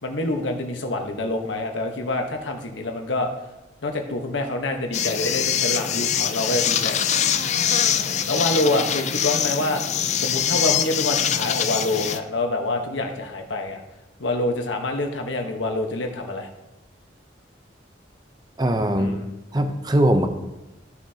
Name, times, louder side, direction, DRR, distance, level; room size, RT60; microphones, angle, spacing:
voice 1, 0.0-3.3 3.8-7.2 7.9-9.8 10.2-13.8 14.2-16.5 19.0-19.3, left 2 dB, 80° left, 4 dB, 1.1 m, -26 dB
sound 1, 4.9-12.2, left 8 dB, 35° left, 0.4 m, -23 dB
voice 2, 18.6-19.2 19.5-20.3, right 1 dB, 20° right, 6 dB, 0.6 m, -20 dB
14.5 x 6.0 x 2.8 m, 1.0 s
head